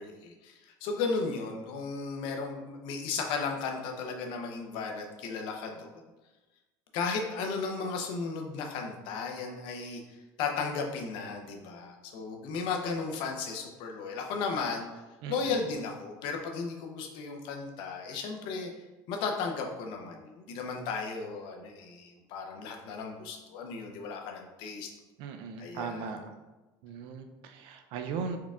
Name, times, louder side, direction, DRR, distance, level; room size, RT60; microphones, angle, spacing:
voice 1, 0.0-5.9 6.9-14.9 15.3-18.7 19.1-24.9 25.6-26.1, left 4 dB, 65° left, 3 dB, 0.7 m, -35 dB
voice 2, 15.2-15.6 25.2-26.3 26.8-28.4, right 6 dB, 65° right, 6 dB, 0.5 m, -38 dB
4.4 x 3.6 x 2.4 m, 1.1 s
cardioid pair, 140°, 9 cm